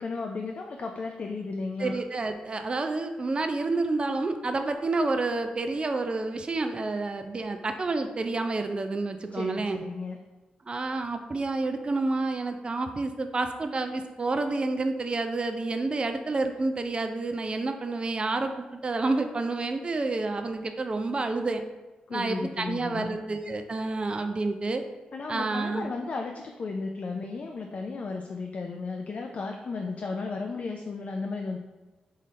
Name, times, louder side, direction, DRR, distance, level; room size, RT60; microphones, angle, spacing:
voice 1, 0.0-2.0 9.3-10.2 22.1-23.2 25.1-31.6, left 3 dB, 55° left, 2 dB, 0.3 m, -34 dB
voice 2, 1.8-9.8 10.7-21.6 22.1-24.8 25.3-25.9, right 3 dB, 35° right, 6 dB, 0.3 m, -29 dB
3.7 x 2.6 x 3.2 m, 1.2 s
supercardioid pair, 50°, 3 cm